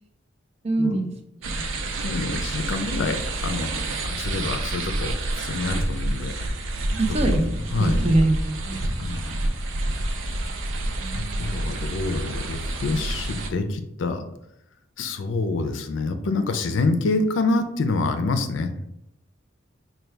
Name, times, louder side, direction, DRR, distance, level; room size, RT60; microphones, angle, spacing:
voice 1, 0.6-1.7 6.9-9.4 11.0-11.8, right 2 dB, 35° right, 3 dB, 0.5 m, -26 dB
sound 1, 1.4-13.5, right 1 dB, 80° right, 0.5 m, -28 dB
voice 2, 2.0-6.3 6.9-7.0 7.3-8.0 9.0-9.4 11.1-14.2 15.0-18.9, left 3 dB, 75° left, 8 dB, 0.5 m, -27 dB
4.5 x 2.3 x 3.3 m, 0.80 s
head